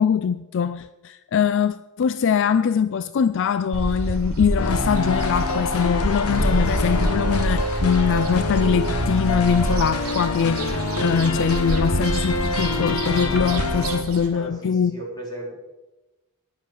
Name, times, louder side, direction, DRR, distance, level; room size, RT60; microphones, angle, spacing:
voice 1, 0.0-14.9, left 7 dB, 60° left, 0.4 m, -22 dB
sound 1, 3.7-14.3, right 1 dB, 75° right, 2.6 m, -27 dB
sound 2, 4.6-14.0, left 2 dB, 85° left, 1.1 m, -26 dB
voice 2, 14.3-15.5, right 1 dB, 20° left, 3.7 m, -36 dB
11.5 x 10.0 x 6.4 m
head